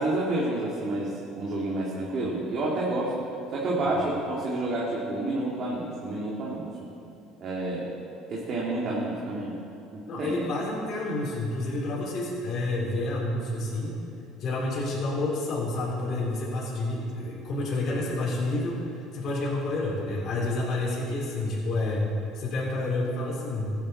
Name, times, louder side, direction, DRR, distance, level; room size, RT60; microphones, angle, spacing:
voice 1, 0.0-3.1 3.5-6.7 7.4-7.9 8.3-9.5 9.9-10.4, right 2 dB, 50° right, -5 dB, 2.2 m, -29 dB
voice 2, 10.1-14.0 14.4-22.1 22.3-23.7, left 2 dB, 50° left, -6 dB, 3.5 m, -29 dB
15.5 x 9.6 x 4.2 m, 2.6 s
supercardioid pair, 100°, 0 cm